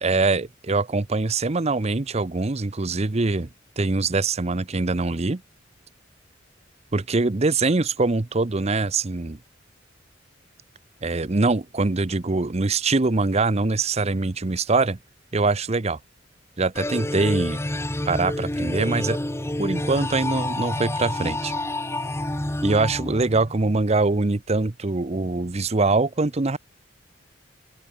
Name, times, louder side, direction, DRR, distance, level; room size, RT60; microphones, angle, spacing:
voice 1, 0.0-3.5 3.8-5.4 6.9-9.4 11.0-15.0 15.3-16.0 16.6-17.6 18.0-19.2 19.6-21.5 22.6-26.6, right 3 dB, 35° right, 0.7 m, -23 dB
sound 1, 16.7-23.7, left 1 dB, 15° left, 1.2 m, -28 dB
open air
head